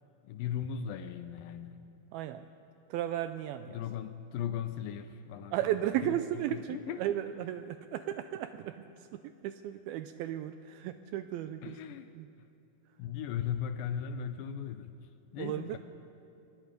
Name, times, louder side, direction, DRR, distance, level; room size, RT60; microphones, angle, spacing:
voice 1, 0.2-1.8 3.7-7.2 11.6-12.1 12.4-12.5 13.0-15.8, left 8 dB, 75° left, 10 dB, 2.1 m, -38 dB
voice 2, 2.1-2.5 2.9-3.8 5.5-11.8 12.2-12.3 15.4-15.8, right 12 dB, 80° right, 10 dB, 2.3 m, -35 dB
25.0 x 20.5 x 5.2 m, 2.6 s
omnidirectional pair, 4.6 m